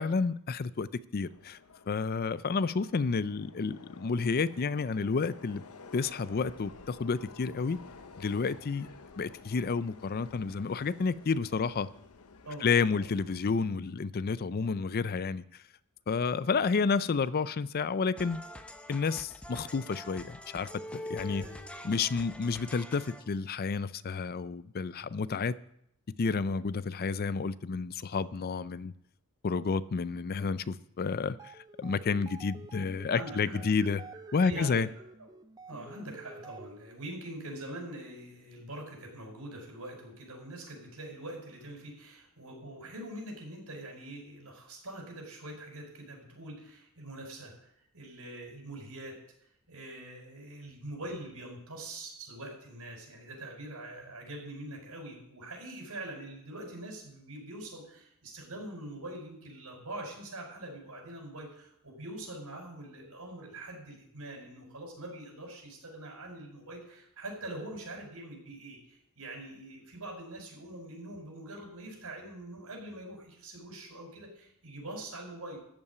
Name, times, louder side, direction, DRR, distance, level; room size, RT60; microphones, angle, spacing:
voice 1, 0.0-1.6 1.9-5.6 5.9-7.8 8.2-8.9 9.2-11.9 12.6-15.4 16.1-18.4 18.9-21.4 21.8-25.5 26.2-28.9 29.4-31.5 31.8-34.0 34.3-34.9, left 5 dB, 45° left, 0.4 m, -30 dB
Subway metro underground, 1.2-13.6, left 4 dB, 90° left, 0.9 m, -52 dB
voice 2, 12.4-13.6 21.2-21.7 25.0-25.1 33.1-34.8 35.2-35.3 35.7-49.2 49.7-75.6, right 1 dB, 85° right, 4.9 m, -44 dB
sound 1, 18.2-23.4, left 1 dB, 5° left, 0.7 m, -45 dB
sound 2, 31.3-37.0, right 3 dB, 15° right, 0.4 m, -49 dB
14.0 x 5.6 x 9.4 m
head